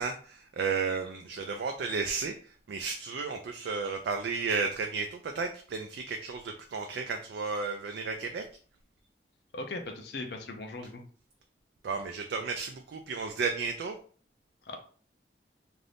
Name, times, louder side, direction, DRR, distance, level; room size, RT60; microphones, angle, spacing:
voice 1, 0.0-8.5 11.8-14.0, right 4 dB, 65° right, 4 dB, 0.3 m, -33 dB
voice 2, 9.5-11.0 14.6-14.8, left 2 dB, 65° left, 4 dB, 0.5 m, -39 dB
2.6 x 2.5 x 3.3 m, 0.43 s
head